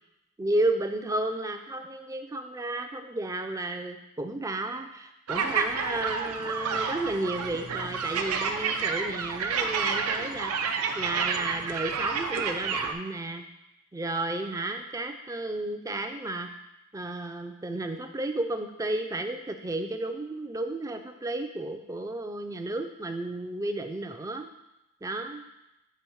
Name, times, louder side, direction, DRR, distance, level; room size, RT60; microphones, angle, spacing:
voice 1, 0.4-13.4 13.9-16.5 16.9-24.5 25.0-25.4, right 2 dB, 15° right, 6 dB, 0.4 m, -32 dB
sound 1, 5.3-12.9, right 5 dB, 80° right, 0.5 m, -30 dB
7.0 x 3.4 x 4.5 m, 0.91 s
head